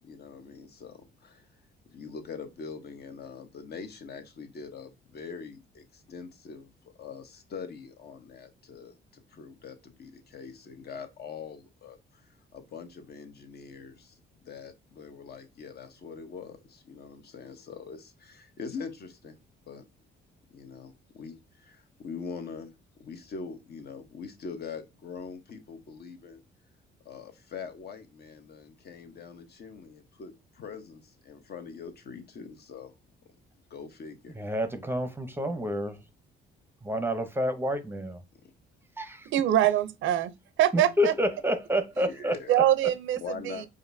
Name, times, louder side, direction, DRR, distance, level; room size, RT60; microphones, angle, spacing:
voice 1, 0.0-1.5 1.9-19.4 19.7-19.9 20.5-22.7 23.0-26.4 27.0-32.9 33.7-34.4 38.4-38.5 42.0-42.6 43.2-43.7, left 5 dB, 55° left, 0.9 m, -43 dB
voice 2, 34.4-36.0 36.8-38.2 39.0-39.3 40.7-42.3, equal, 10° right, 0.6 m, -29 dB
voice 3, 39.3-40.3 40.6-41.1 42.5-43.6, right 11 dB, 75° right, 0.5 m, -24 dB
5.1 x 2.5 x 2.6 m
cardioid pair, 90°, 20 cm